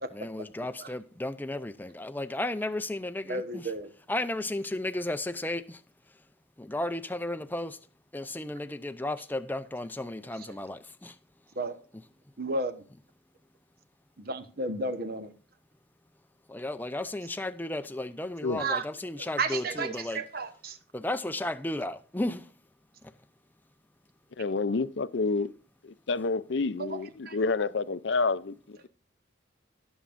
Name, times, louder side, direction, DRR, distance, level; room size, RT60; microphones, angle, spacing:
voice 1, 0.1-3.7 4.1-5.8 6.6-7.8 8.1-11.1 16.5-20.2 20.9-22.5, left 1 dB, 10° left, 0.5 m, -34 dB
voice 2, 3.3-3.9 11.6-11.8 12.4-12.8 14.2-15.3 18.6-18.8 19.2-20.8 26.8-27.0 27.3-27.4, right 3 dB, 50° right, 1.0 m, -32 dB
voice 3, 24.4-25.5 25.8-28.9, left 3 dB, 60° left, 0.5 m, -29 dB
18.5 x 7.2 x 2.5 m
head